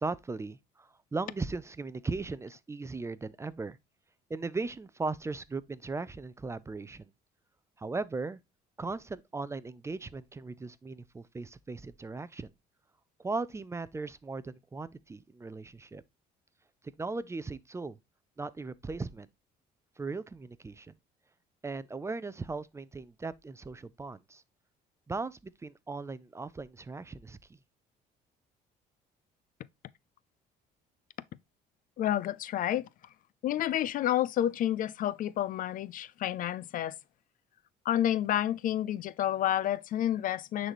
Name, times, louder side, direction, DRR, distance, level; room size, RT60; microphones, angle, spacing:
voice 1, 0.0-3.8 4.3-7.1 7.8-8.4 8.8-12.5 13.2-16.0 16.8-18.0 18.4-19.3 20.0-20.9 21.6-24.4 25.1-27.4, right 3 dB, 15° right, 0.5 m, -38 dB
voice 2, 32.0-32.9 33.4-37.0 37.9-40.7, left 12 dB, 55° left, 0.4 m, -29 dB
9.8 x 4.1 x 3.0 m
cardioid pair, 110°, 17 cm